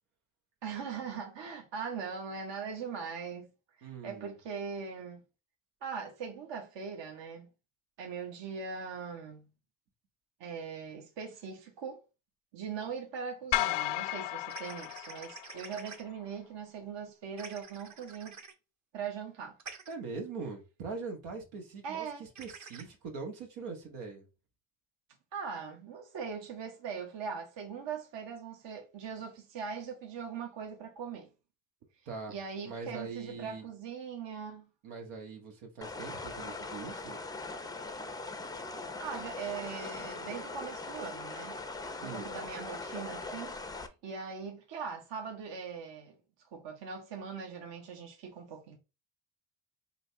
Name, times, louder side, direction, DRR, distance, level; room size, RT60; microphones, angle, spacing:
voice 1, 0.6-3.5 3.8-5.2 5.8-7.5 8.0-9.5 10.4-12.0 12.5-18.4 18.9-19.6 21.8-22.3 25.3-31.3 32.3-34.7 39.0-41.6 42.0-46.2 46.5-48.8, right 6 dB, 60° right, 1.2 m, -41 dB
voice 2, 3.8-4.3 19.9-24.2 32.0-32.3 32.6-33.6 34.8-37.2 42.0-42.3, right 4 dB, 80° right, 1.6 m, -42 dB
sound 1, 13.5-15.9, left 15 dB, 60° left, 0.5 m, -33 dB
sound 2, 13.5-13.6 14.5-16.0 17.4-18.5 19.6-19.9 22.3-22.8, right 5 dB, 35° right, 0.9 m, -47 dB
sound 3, 35.8-43.9, left 3 dB, 10° left, 0.5 m, -41 dB
3.9 x 2.7 x 4.5 m
cardioid pair, 95°, 49 cm